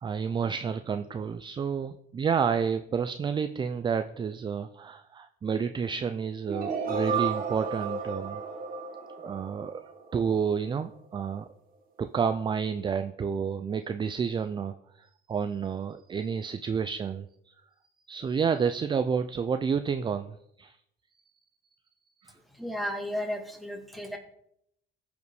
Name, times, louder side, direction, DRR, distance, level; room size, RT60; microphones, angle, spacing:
voice 1, 0.0-8.4 9.2-9.8 10.1-11.5 12.0-17.5 18.1-20.8 22.2-22.3, right 6 dB, 30° right, 9 dB, 0.5 m, -30 dB
sound 1, 6.5-10.4, right 5 dB, 55° right, 1.9 m, -33 dB
voice 2, 22.5-24.2, equal, ahead, 2 dB, 1.9 m, -34 dB
15.0 x 5.2 x 4.8 m, 0.75 s
cardioid pair, 110°, 17 cm